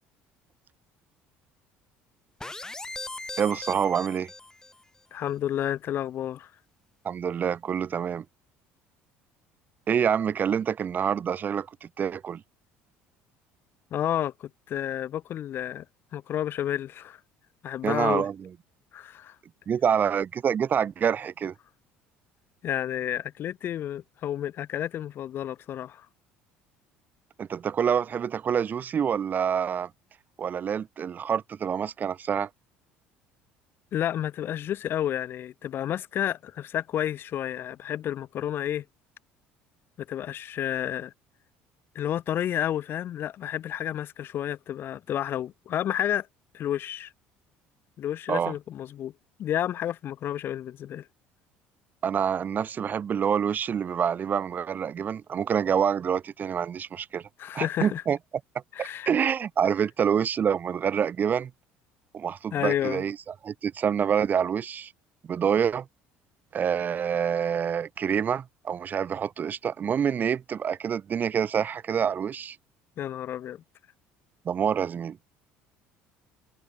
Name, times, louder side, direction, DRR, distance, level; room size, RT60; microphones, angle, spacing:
sound 1, 2.4-4.8, left 2 dB, 15° left, 3.4 m, -39 dB
voice 1, 3.4-4.3 7.0-8.2 9.9-12.4 17.8-18.5 19.7-21.5 27.4-29.9 30.4-32.5 48.3-48.5 52.0-57.2 57.5-58.2 58.8-61.5 62.1-63.2 63.4-64.9 65.2-65.9 66.5-72.6 74.4-75.2, right 8 dB, 40° right, 0.8 m, -27 dB
voice 2, 5.1-6.5 13.9-15.8 16.1-17.2 17.6-18.3 18.9-19.4 22.6-26.1 33.9-38.8 40.1-41.1 41.9-46.3 46.5-47.1 48.0-49.1 49.4-51.1 57.4-58.0 58.7-59.1 62.5-63.0 73.0-73.6, left 11 dB, 50° left, 0.6 m, -30 dB
supercardioid pair, 95°, 5 cm